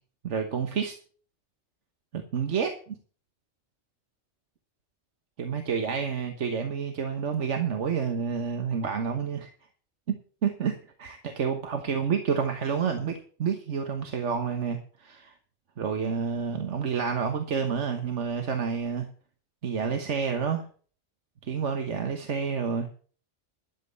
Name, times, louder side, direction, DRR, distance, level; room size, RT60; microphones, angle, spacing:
voice 1, 0.2-0.9 2.1-2.9 5.4-9.5 10.4-10.7 11.0-15.3 15.8-19.1 19.6-20.6 21.4-22.9, right 6 dB, 85° right, 5 dB, 1.6 m, -29 dB
12.0 x 7.5 x 7.0 m, 0.43 s
omnidirectional pair, 1.2 m